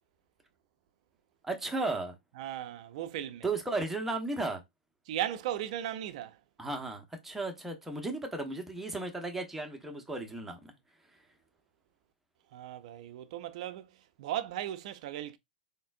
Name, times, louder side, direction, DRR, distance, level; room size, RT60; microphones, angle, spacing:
voice 1, 1.4-2.1 3.4-4.6 6.6-10.7, right 2 dB, 5° right, 1.0 m, -35 dB
voice 2, 2.4-3.4 5.1-6.4 12.5-13.9 14.2-15.4, right 11 dB, 50° right, 0.6 m, -36 dB
4.1 x 3.6 x 2.5 m
figure-of-eight pair, 110°, 5 cm